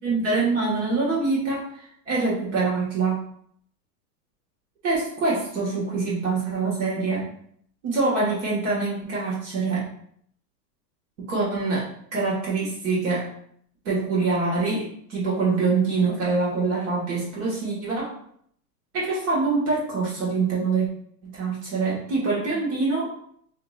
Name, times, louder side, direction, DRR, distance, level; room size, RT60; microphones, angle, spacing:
voice 1, 0.0-1.7 2.1-3.2 4.8-7.3 7.8-9.9 11.2-11.9 12.1-13.3 13.8-18.1 18.9-20.9 21.2-23.1, right 3 dB, 45° right, -6 dB, 1.5 m, -25 dB
4.7 x 2.8 x 2.4 m, 0.66 s
supercardioid pair, 175°, 49 cm